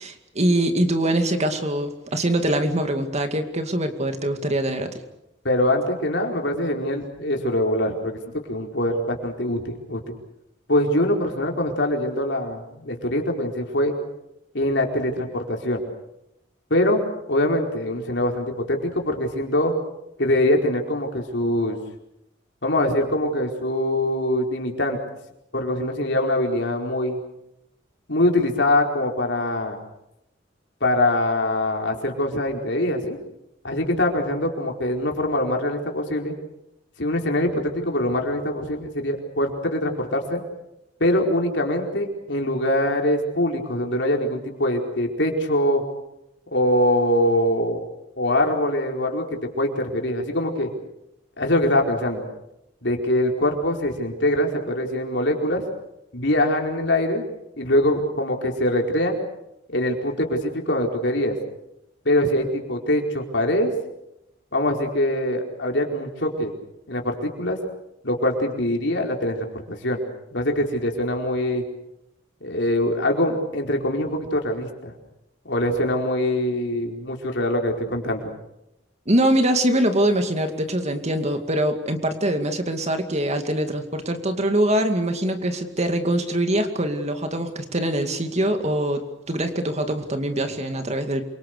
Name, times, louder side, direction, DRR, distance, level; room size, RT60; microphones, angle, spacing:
voice 1, 0.0-4.9 79.1-91.2, right 1 dB, 35° right, 6 dB, 2.3 m, -23 dB
voice 2, 5.4-8.2 8.5-10.0 10.7-13.9 14.5-15.8 16.7-19.7 20.2-21.8 22.6-25.0 25.5-27.2 28.1-29.8 30.8-33.2 33.6-36.4 37.0-40.4 41.0-45.8 46.5-47.8 48.2-49.3 49.6-50.7 51.4-52.2 52.8-55.6 56.1-57.3 57.6-59.2 59.7-61.3 62.0-63.7 64.5-66.5 66.9-67.6 68.0-70.0 70.3-71.6 72.4-74.9 75.4-78.3, left 1 dB, 65° left, 2 dB, 4.7 m, -23 dB
27.5 x 24.5 x 6.7 m, 0.86 s
head